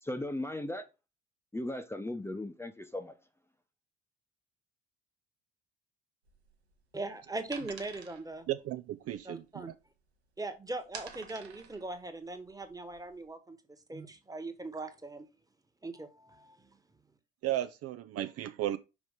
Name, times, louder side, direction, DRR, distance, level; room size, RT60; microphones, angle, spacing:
voice 1, 0.0-0.9 1.5-3.2, left 1 dB, 10° left, 0.9 m, -37 dB
sound 1, 6.2-10.3 10.6-13.3, right 6 dB, 85° right, 1.1 m, -50 dB
voice 2, 6.9-8.5 9.1-9.7 10.4-13.6 13.9-15.3 15.8-16.7, right 2 dB, 10° right, 1.4 m, -40 dB
voice 3, 8.5-9.7 17.4-18.8, right 13 dB, 50° right, 0.6 m, -35 dB
6.1 x 5.2 x 3.6 m
figure-of-eight pair, 50°, 31 cm